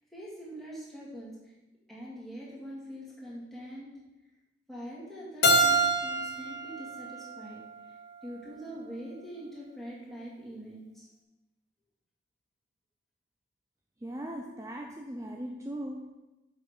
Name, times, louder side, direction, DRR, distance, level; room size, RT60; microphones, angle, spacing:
voice 1, 0.1-1.3 1.9-3.9 4.7-7.6 8.2-11.1, equal, ahead, -7 dB, 2.1 m, -43 dB
Keyboard (musical), 5.4-8.3, right 1 dB, 55° left, 0.8 m, -27 dB
voice 2, 14.0-16.1, right 1 dB, 15° right, 2 dB, 0.5 m, -38 dB
6.6 x 6.3 x 5.0 m, 1.0 s
head